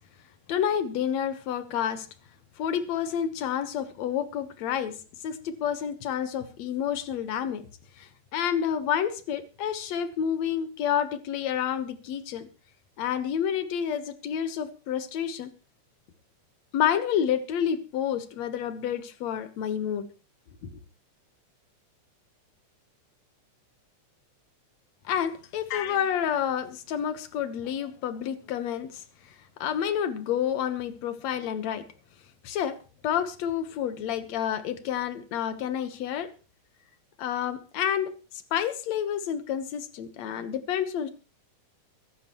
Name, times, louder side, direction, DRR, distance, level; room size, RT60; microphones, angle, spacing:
voice 1, 0.5-2.1 2.6-4.9 5.2-7.6 8.0-12.5 13.0-15.5 16.7-20.1 20.6-20.7 25.1-29.0 29.6-31.8 32.4-32.8 33.0-36.3 37.2-38.1 38.5-41.1, left 9 dB, 65° left, 11 dB, 2.4 m, -29 dB
23.0 x 11.5 x 3.1 m, 0.33 s
omnidirectional pair, 3.5 m